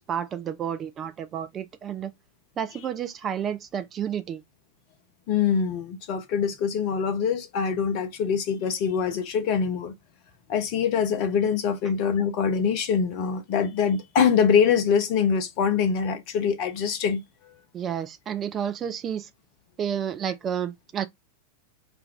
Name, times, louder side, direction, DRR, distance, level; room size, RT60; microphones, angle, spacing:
voice 1, 0.0-2.1 2.6-4.4 17.7-19.3 19.8-21.1, right 8 dB, 25° right, 0.3 m, -30 dB
voice 2, 5.3-9.9 10.5-17.2, left 7 dB, 45° left, 0.6 m, -24 dB
2.5 x 2.2 x 3.5 m
figure-of-eight pair, 90°, 0 cm